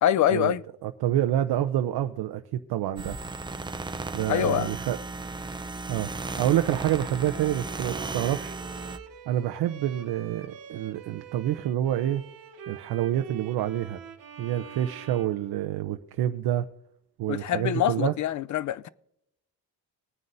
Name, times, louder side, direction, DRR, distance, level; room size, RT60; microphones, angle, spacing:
voice 1, 0.0-0.6 4.3-4.7 17.3-18.9, left 11 dB, 50° left, 0.5 m, -25 dB
voice 2, 0.8-3.2 4.1-5.0 5.9-6.1 6.4-8.6 9.3-12.2 12.7-14.0 14.4-16.7 17.2-18.1, right 12 dB, 80° right, 0.7 m, -27 dB
sound 1, 3.0-9.0, right 3 dB, 10° right, 0.6 m, -35 dB
Bowed string instrument, 6.3-16.1, right 8 dB, 60° right, 1.0 m, -45 dB
20.0 x 9.4 x 2.6 m
cardioid pair, 125°, 38 cm